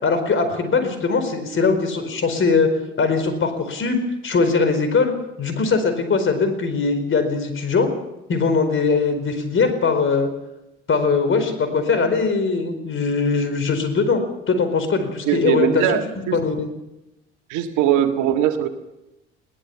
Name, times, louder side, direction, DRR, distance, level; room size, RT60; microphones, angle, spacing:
voice 1, 0.0-2.7 3.0-4.0 4.2-5.1 5.4-7.9 8.3-10.3 10.9-14.2 14.5-15.8 16.3-16.7, left 4 dB, 35° left, 8 dB, 4.6 m, -20 dB
voice 2, 15.3-16.4 17.5-18.7, right 10 dB, 55° right, 6 dB, 1.8 m, -20 dB
21.5 x 17.0 x 7.1 m, 0.96 s
figure-of-eight pair, 60°, 35 cm